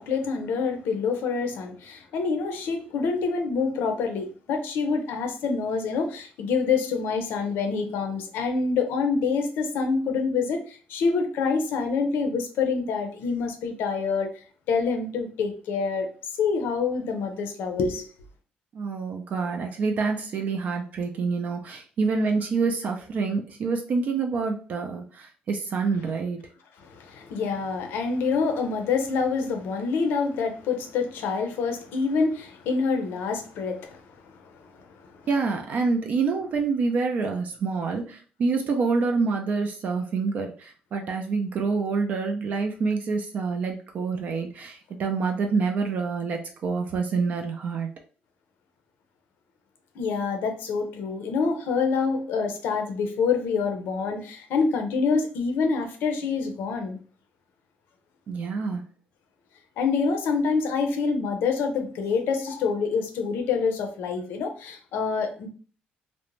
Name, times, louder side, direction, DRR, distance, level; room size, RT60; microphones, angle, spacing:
voice 1, 0.0-14.3 14.7-16.1 16.4-18.1 26.8-35.2 50.0-57.0 59.8-65.5, left 5 dB, 80° left, 0.6 m, -26 dB
voice 2, 18.7-26.4 35.3-47.9 58.3-58.8, right 4 dB, 45° right, 0.3 m, -27 dB
2.5 x 2.1 x 3.0 m
cardioid pair, 160°, 4 cm